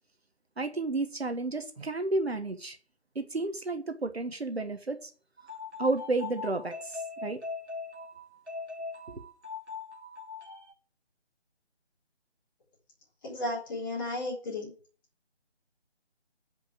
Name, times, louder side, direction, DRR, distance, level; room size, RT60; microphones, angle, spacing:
voice 1, 0.6-2.8 3.1-5.1 5.8-7.4 9.1-9.2, right 2 dB, 65° right, 1.3 m, -32 dB
sound 1, 5.4-10.7, left 4 dB, 90° right, 2.0 m, -41 dB
voice 2, 13.2-14.7, left 2 dB, 20° left, 3.5 m, -34 dB
9.4 x 5.3 x 7.8 m
figure-of-eight pair, 155°, 34 cm